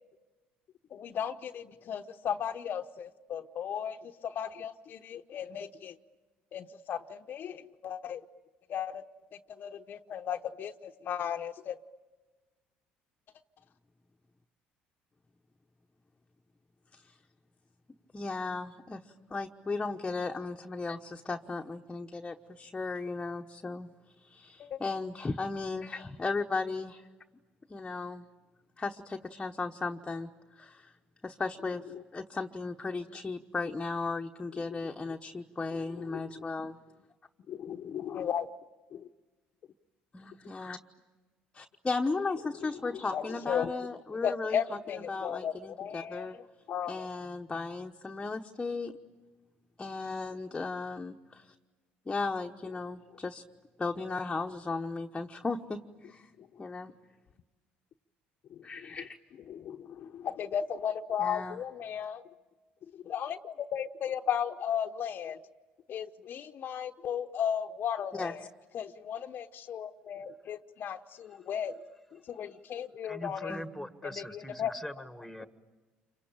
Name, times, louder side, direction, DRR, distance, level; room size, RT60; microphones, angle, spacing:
voice 1, 0.9-5.9 6.5-8.2 8.7-9.0 9.5-11.8 24.6-24.8 31.9-32.0 34.6-34.8 36.0-36.4 37.5-38.5 38.9-39.1 43.1-43.7 44.2-46.4 46.7-47.1 58.5-59.0 59.5-62.2 62.9-65.4 65.9-68.5 68.7-71.8 72.1-73.6 74.0-74.7, left 8 dB, 55° left, 7 dB, 0.9 m, -35 dB
voice 2, 18.1-19.0 19.3-23.9 24.2-27.1 27.7-28.3 28.8-31.0 31.2-31.8 32.1-36.8 40.1-40.8 41.5-44.6 44.9-46.4 46.9-49.0 49.8-51.5 52.1-53.4 53.8-56.3 56.6-56.9 58.6-59.2 61.2-61.6 68.1-68.3 73.5-73.7, left 3 dB, 20° left, 2 dB, 1.1 m, -36 dB
voice 3, 73.0-75.5, left 1 dB, ahead, 9 dB, 1.8 m, -42 dB
27.5 x 24.5 x 8.8 m, 1.3 s
supercardioid pair, 85°, 4 cm